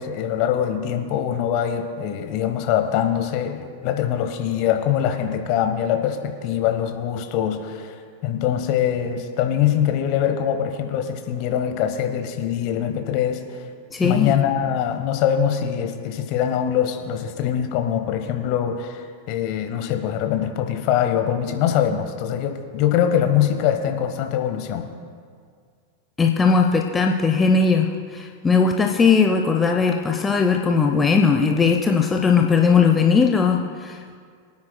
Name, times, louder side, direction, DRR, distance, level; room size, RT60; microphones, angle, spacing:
voice 1, 0.0-13.6 14.0-24.9, left 9 dB, 45° left, 6 dB, 1.0 m, -23 dB
voice 2, 13.9-14.3 26.2-34.2, left 5 dB, 15° left, 2 dB, 0.6 m, -18 dB
24.0 x 9.6 x 2.2 m, 2.1 s
figure-of-eight pair, 90°, 0 cm